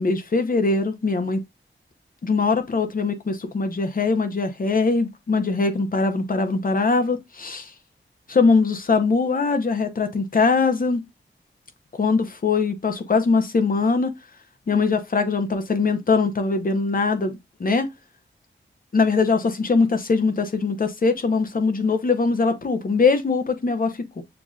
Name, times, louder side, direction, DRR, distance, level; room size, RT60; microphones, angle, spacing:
voice 1, 0.0-1.4 2.2-7.7 8.3-11.0 11.9-14.1 14.7-17.9 18.9-24.2, left 4 dB, 45° left, 0.7 m, -22 dB
6.8 x 2.6 x 2.4 m
wide cardioid pair, 90°, 20 cm